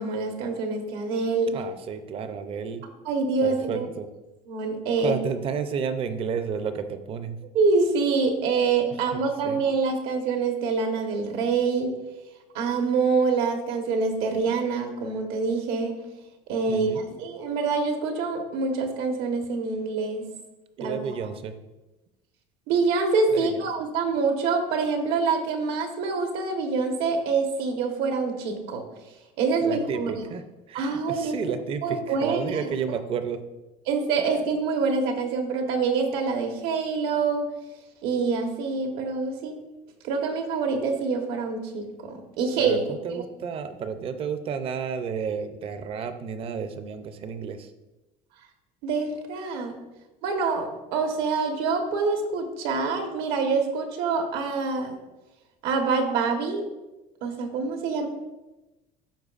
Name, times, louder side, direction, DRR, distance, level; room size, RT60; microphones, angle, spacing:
voice 1, 0.0-1.6 3.0-3.9 4.5-5.1 7.5-11.9 12.5-16.0 16.5-20.3 20.8-21.1 22.7-28.8 29.4-30.2 30.7-31.4 31.8-32.6 32.9-33.0 33.9-37.4 38.0-39.6 40.0-43.2 48.8-49.7 50.2-55.0 55.6-56.7 57.2-58.1, right 4 dB, 80° right, 4 dB, 1.2 m, -26 dB
voice 2, 1.5-2.8 3.4-4.1 5.0-7.4 9.1-9.6 16.7-17.0 20.8-21.5 23.3-23.6 29.6-33.4 42.6-47.7, right 6 dB, 35° right, 9 dB, 0.5 m, -31 dB
13.0 x 4.6 x 2.5 m, 1.0 s
cardioid pair, 165°, 16 cm